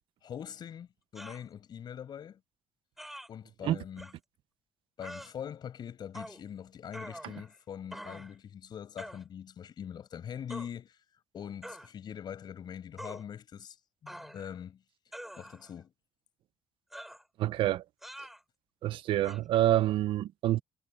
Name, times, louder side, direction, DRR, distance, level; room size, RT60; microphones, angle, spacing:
voice 1, 0.2-2.4 3.3-4.1 5.0-11.0 11.3-13.8 14.0-14.8 15.4-15.9, left 8 dB, 50° left, 6.3 m, -43 dB
sound 1, 1.2-1.4 3.0-3.3 4.0-4.1 5.0-5.3 6.1-6.4 6.9-7.6 7.9-8.4 9.0-9.2 10.5-10.7 11.6-11.9 13.0-13.2 14.1-14.6 15.1-15.7 16.9-17.2 18.0-18.4 19.2-19.4, equal, ahead, 5.9 m, -45 dB
voice 2, 17.4-17.8 18.8-20.6, right 13 dB, 70° right, 0.8 m, -27 dB
cardioid pair, 100°, 9 cm